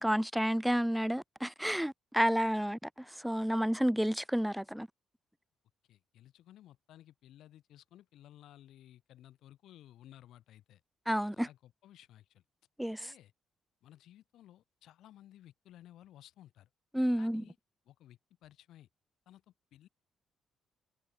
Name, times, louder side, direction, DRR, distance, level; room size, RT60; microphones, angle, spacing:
voice 1, 0.0-4.9 11.1-11.5 12.8-13.1 16.9-17.4, equal, 5° right, 0.5 m, -30 dB
voice 2, 5.9-10.8 11.4-12.4 13.0-13.3 13.8-16.7 17.2-17.6 17.9-18.9 19.3-19.9, left 12 dB, 80° left, 5.5 m, -57 dB
cardioid pair, 90°, 0 cm